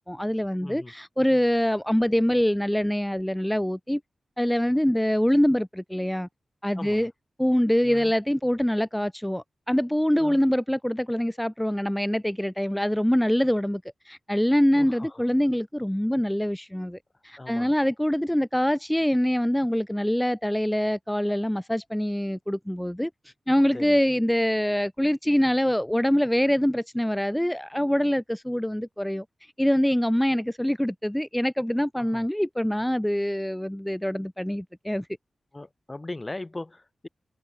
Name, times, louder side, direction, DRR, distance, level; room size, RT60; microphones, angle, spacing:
voice 1, 0.0-4.0 4.4-6.3 6.6-7.1 7.4-17.0 17.2-23.1 23.5-29.2 29.6-35.1, equal, 5° left, 3.7 m, -24 dB
voice 2, 0.6-0.9 6.8-7.1 7.8-8.1 10.2-10.5 14.7-15.1 17.4-17.7 23.7-24.0 32.1-32.2 35.5-37.1, left 2 dB, 25° left, 5.7 m, -39 dB
wide cardioid pair, 80°, 0 cm